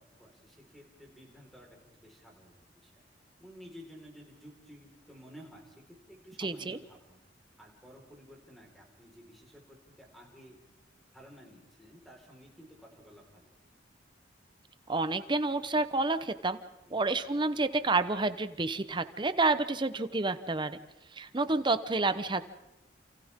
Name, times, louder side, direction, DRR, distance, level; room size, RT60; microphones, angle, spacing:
voice 1, 0.0-3.0 3.4-7.2 7.6-10.6 11.1-13.5 16.9-17.1, equal, ahead, -1 dB, 4.7 m, -53 dB
voice 2, 6.4-6.8 14.9-16.6 16.9-20.8 21.1-22.4, right 3 dB, 25° right, 11 dB, 0.9 m, -29 dB
29.0 x 28.0 x 3.7 m, 0.98 s
head